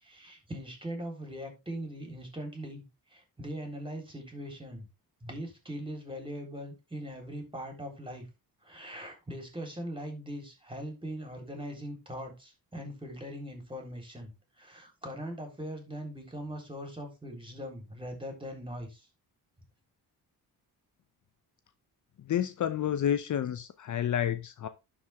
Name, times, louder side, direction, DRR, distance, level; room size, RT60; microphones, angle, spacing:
voice 1, 0.0-2.8 3.1-4.9 5.2-8.3 8.6-19.1, equal, 15° right, 3.9 m, -41 dB
voice 2, 22.2-24.7, left 10 dB, 50° left, 0.7 m, -30 dB
11.5 x 5.0 x 3.5 m
cardioid pair, 100°, 38 cm